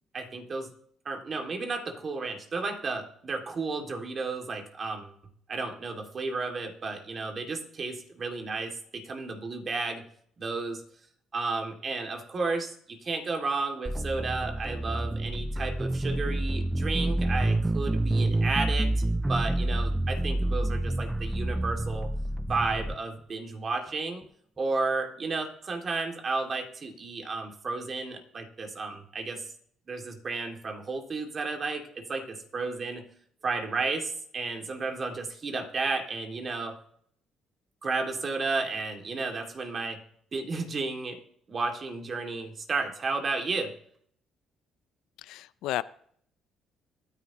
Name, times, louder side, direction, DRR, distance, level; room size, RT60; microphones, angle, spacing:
voice 1, 0.1-0.7 1.1-5.1 5.5-10.0 10.4-10.8 11.3-18.9 19.3-22.1 22.4-24.2 24.6-29.4 29.9-33.0 33.4-36.8 37.8-40.0 40.3-41.2 41.5-43.7, right 3 dB, 40° right, 4 dB, 2.3 m, -32 dB
sound 1, 13.9-23.0, right 1 dB, 10° right, 0.5 m, -28 dB
voice 2, 45.2-45.8, left 15 dB, 85° left, 17 dB, 0.4 m, -32 dB
25.0 x 9.7 x 3.0 m, 0.65 s
cardioid pair, 85°, 0 cm